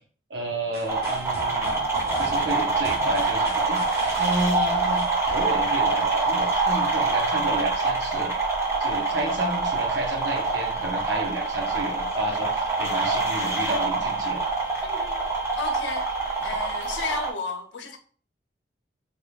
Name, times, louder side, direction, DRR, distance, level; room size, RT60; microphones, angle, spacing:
voice 1, 0.3-1.7 2.2-3.8 4.2-5.0 5.3-8.3 8.8-14.4, right 1 dB, 85° right, 1.0 m, -30 dB
sound 1, 0.7-6.0, equal, 60° right, 1.6 m, -40 dB
sound 2, 0.9-17.3, right 3 dB, 15° right, 0.7 m, -25 dB
voice 2, 14.8-15.2 15.6-16.1 16.4-18.0, left 4 dB, 80° left, 0.6 m, -33 dB
3.6 x 2.3 x 3.3 m
head